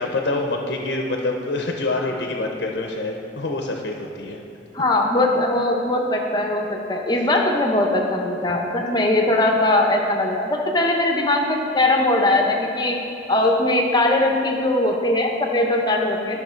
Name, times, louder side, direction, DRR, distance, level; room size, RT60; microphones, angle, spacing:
voice 1, 0.0-4.4, left 2 dB, 65° left, 2 dB, 0.6 m, -26 dB
voice 2, 4.7-13.0 13.3-16.4, left 1 dB, 25° left, 2 dB, 0.7 m, -20 dB
11.5 x 5.7 x 4.4 m, 2.8 s
head